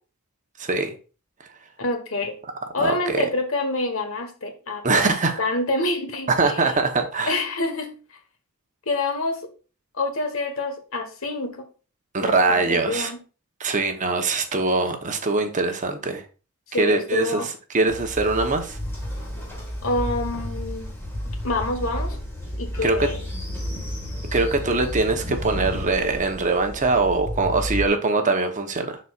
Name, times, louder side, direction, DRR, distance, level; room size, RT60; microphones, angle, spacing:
voice 1, 0.6-0.9 2.8-3.2 4.8-5.4 6.3-7.4 12.1-13.1 13.6-16.2 16.8-18.8 22.8-23.1 24.3-29.0, right 3 dB, 35° right, 0.9 m, -22 dB
voice 2, 1.8-2.4 2.7-5.1 5.4-6.7 7.3-7.9 8.9-9.5 10.0-11.7 12.2-13.2 16.7-17.5 19.8-20.9 21.4-22.2 22.6-23.2, left 2 dB, 65° left, 1.3 m, -27 dB
Train, 17.9-27.9, equal, 10° left, 1.8 m, -31 dB
11.0 x 4.2 x 2.4 m
head